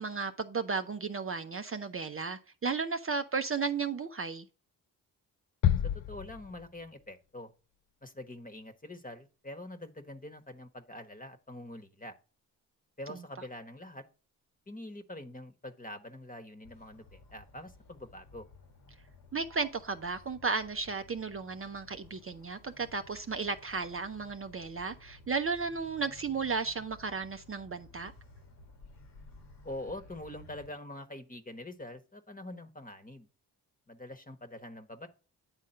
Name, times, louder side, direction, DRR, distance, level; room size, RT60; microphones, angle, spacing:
voice 1, 0.0-4.5 19.3-28.1, right 4 dB, 30° right, 0.6 m, -34 dB
sound 1, 5.6-7.0, left 11 dB, 55° left, 0.5 m, -30 dB
voice 2, 6.1-7.5 8.0-12.1 13.0-14.0 14.7-18.5 29.6-33.3 33.9-35.1, left 1 dB, 20° left, 1.2 m, -45 dB
Motor vehicle (road), 16.6-30.7, left 3 dB, 75° left, 1.8 m, -56 dB
8.9 x 3.6 x 5.3 m
supercardioid pair, 55°, 41 cm